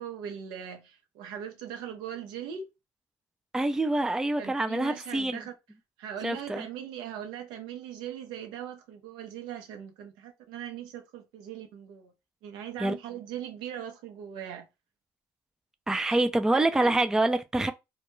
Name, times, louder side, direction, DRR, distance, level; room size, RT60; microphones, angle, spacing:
voice 1, 0.0-2.7 4.4-5.5 6.0-12.1 12.4-14.7 16.1-16.2 16.5-16.9, right 9 dB, 85° right, 0.6 m, -40 dB
voice 2, 3.5-5.4 6.2-6.6 12.8-12.9 15.9-17.7, right 2 dB, 10° right, 0.3 m, -26 dB
2.2 x 2.1 x 3.0 m
supercardioid pair, 75°, 8 cm